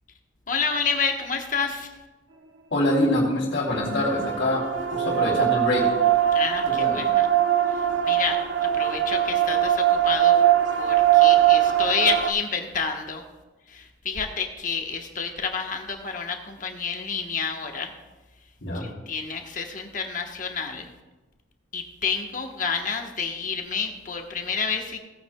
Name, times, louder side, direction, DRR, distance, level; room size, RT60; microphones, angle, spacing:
voice 1, 0.5-1.9 6.3-7.3 7.7-8.4 8.7-10.3 10.8-13.2 13.7-17.9 18.7-20.9 21.7-25.0, left 5 dB, 40° left, 3 dB, 1.1 m, -29 dB
voice 2, 2.7-5.9 6.7-7.0 18.6-18.9, left 1 dB, 70° left, -9 dB, 2.9 m, -25 dB
sound 1, 3.7-12.3, right 11 dB, 75° right, 0.7 m, -21 dB
17.0 x 9.1 x 2.2 m, 1.1 s
head